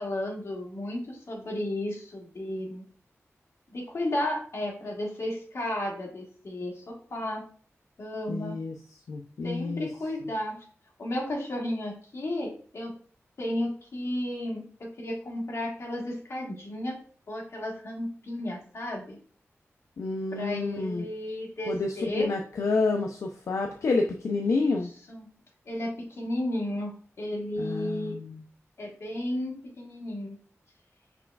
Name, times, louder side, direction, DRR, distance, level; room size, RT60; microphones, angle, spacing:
voice 1, 0.0-2.8 3.7-7.4 8.0-8.6 9.4-10.6 11.0-12.9 13.4-17.0 17.3-19.2 20.3-22.3 24.4-24.8 25.1-25.3 25.6-28.2 28.8-30.4, left 1 dB, 60° left, -1 dB, 1.5 m, -33 dB
voice 2, 8.3-8.7 9.1-9.9 20.0-21.0 21.7-24.9 27.6-28.4, left 3 dB, 80° left, 2 dB, 0.4 m, -29 dB
5.9 x 3.3 x 2.3 m, 0.43 s
wide cardioid pair, 115°, 5 cm